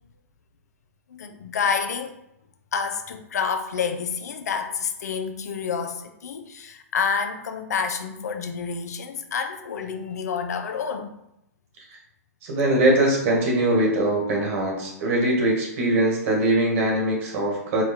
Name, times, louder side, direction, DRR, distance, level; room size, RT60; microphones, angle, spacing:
voice 1, 1.1-2.1 2.7-11.1, left 6 dB, 70° left, 7 dB, 0.6 m, -28 dB
voice 2, 12.4-17.8, right 1 dB, 50° right, -1 dB, 1.6 m, -22 dB
4.7 x 2.4 x 4.3 m, 0.81 s
hypercardioid pair, 120°, 9 cm